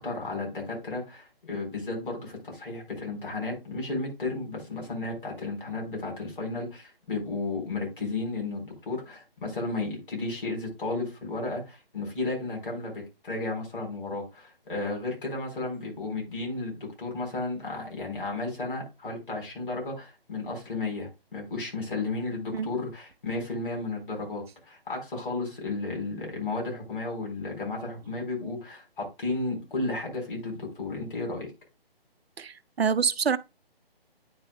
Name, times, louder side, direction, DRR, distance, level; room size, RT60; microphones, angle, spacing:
voice 1, 0.0-31.5, left 3 dB, 55° left, 4.3 m, -33 dB
voice 2, 32.4-33.4, right 6 dB, 80° right, 0.6 m, -26 dB
9.4 x 5.5 x 2.3 m
figure-of-eight pair, 150°, 30 cm